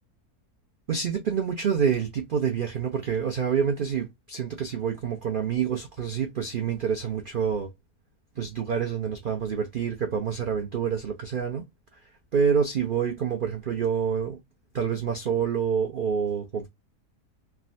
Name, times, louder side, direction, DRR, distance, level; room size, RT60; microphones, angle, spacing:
voice 1, 0.9-7.7 8.4-11.7 11.9-12.0 12.3-14.4 14.7-16.7, right 7 dB, 85° right, 0.4 m, -27 dB
3.5 x 2.1 x 2.4 m
omnidirectional pair, 1.7 m